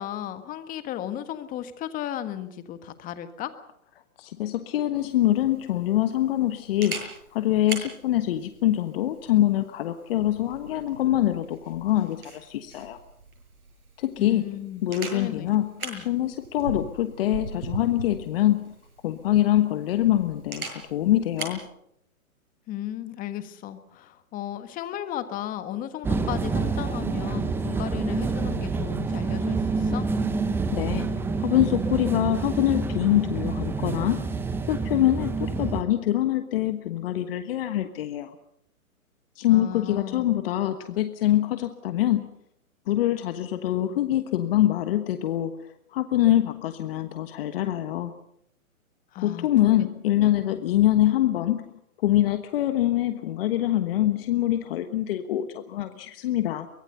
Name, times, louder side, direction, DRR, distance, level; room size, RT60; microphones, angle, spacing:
voice 1, 0.0-3.5 14.2-14.8 15.1-15.5 15.8-16.0 22.7-30.1 39.5-40.3 49.1-49.7 50.4-50.6, left 11 dB, 20° left, 11 dB, 1.5 m, -35 dB
voice 2, 4.2-13.0 14.0-14.5 14.8-15.7 16.0-18.6 19.0-21.7 30.7-34.3 34.7-38.3 39.4-42.3 42.9-45.6 45.9-48.2 49.2-51.7 52.0-56.7, left 13 dB, 40° left, 9 dB, 1.4 m, -24 dB
Camera, 4.9-21.6, right 3 dB, 80° right, 7.6 m, -41 dB
sound 1, 26.0-35.8, right 4 dB, 5° right, 0.9 m, -27 dB
24.0 x 20.5 x 6.8 m, 0.75 s
hypercardioid pair, 135°, 43 cm